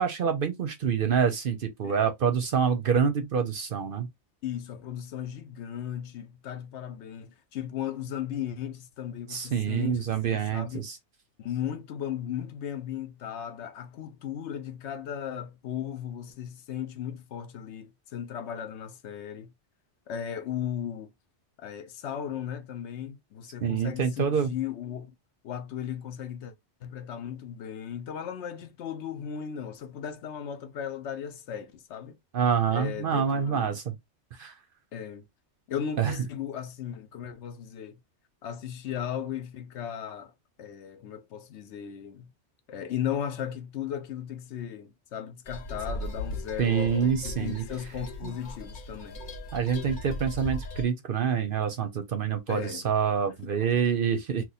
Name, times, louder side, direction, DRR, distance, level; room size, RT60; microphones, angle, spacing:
voice 1, 0.0-4.1 9.3-11.0 23.6-24.5 32.3-33.9 34.4-34.5 36.0-36.2 46.6-47.6 48.2-48.3 49.5-54.4, right 7 dB, 60° right, 0.7 m, -26 dB
voice 2, 4.4-10.9 11.4-19.5 20.1-21.1 21.6-25.2 25.4-26.5 26.8-32.2 32.7-33.8 34.9-35.3 35.7-38.0 38.4-40.3 40.6-42.3 42.7-49.2 52.5-52.9 53.3-53.7 54.4-54.5, left 9 dB, 70° left, 0.9 m, -36 dB
sound 1, 45.4-50.8, left 1 dB, 45° left, 0.9 m, -38 dB
2.9 x 2.2 x 4.0 m
omnidirectional pair, 1.2 m